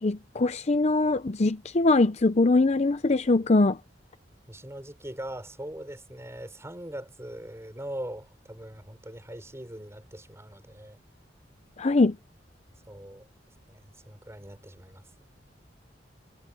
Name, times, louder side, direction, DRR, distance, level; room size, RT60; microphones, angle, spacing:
voice 1, 0.0-3.8 11.8-12.2, left 2 dB, 35° left, 0.6 m, -22 dB
voice 2, 4.5-11.0 12.9-13.3 13.7-15.0, right 1 dB, 15° right, 5.2 m, -41 dB
head